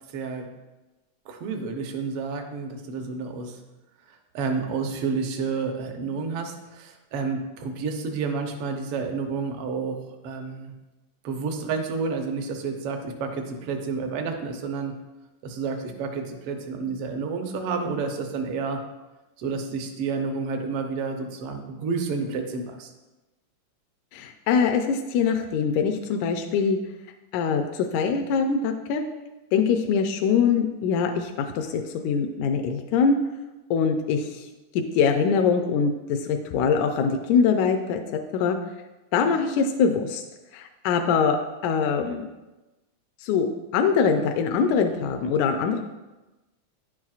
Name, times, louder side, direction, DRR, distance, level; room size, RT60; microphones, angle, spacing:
voice 1, 0.1-0.5 1.3-3.6 4.3-10.8 11.2-15.0 15.4-18.8 19.4-22.9, right 4 dB, 70° right, 4 dB, 1.4 m, -30 dB
voice 2, 24.1-26.8 27.3-29.0 29.5-33.2 33.7-34.5 34.7-38.0 38.3-38.6 39.1-40.2 40.5-41.4 41.6-42.3 43.2-43.5 43.7-45.8, left 6 dB, 85° left, 4 dB, 1.9 m, -23 dB
10.5 x 7.4 x 2.4 m, 1.1 s
omnidirectional pair, 3.3 m